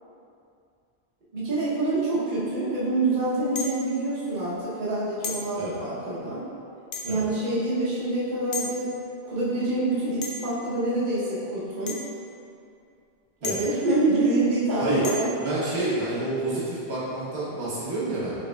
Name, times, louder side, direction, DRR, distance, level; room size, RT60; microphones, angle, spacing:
voice 1, 1.3-6.5 7.0-8.9 9.2-12.0 13.4-15.3, right 2 dB, 50° right, -8 dB, 1.0 m, -26 dB
sound 1, 3.6-3.9 5.2-5.5 6.9-7.3 8.5-8.7 10.2-10.6 11.9-12.1 13.4-13.8 15.0-15.4, left 3 dB, 80° left, 0.8 m, -33 dB
voice 2, 15.4-18.4, right 2 dB, 85° right, -8 dB, 1.2 m, -28 dB
5.0 x 3.6 x 2.3 m, 2.4 s
omnidirectional pair, 1.0 m